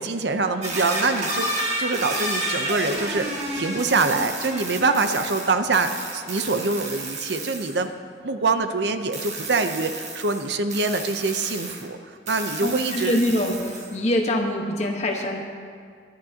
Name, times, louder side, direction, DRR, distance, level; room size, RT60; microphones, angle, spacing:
voice 1, 0.0-1.5 1.8-7.9 8.2-13.2, right 3 dB, 65° right, 8 dB, 0.7 m, -25 dB
sound 1, 0.6-7.8 9.1-11.8 12.3-13.9, right 2 dB, 35° right, 1.7 m, -31 dB
voice 2, 12.6-15.4, left 1 dB, 35° left, 1 dB, 1.3 m, -24 dB
24.5 x 10.5 x 2.9 m, 2.1 s
head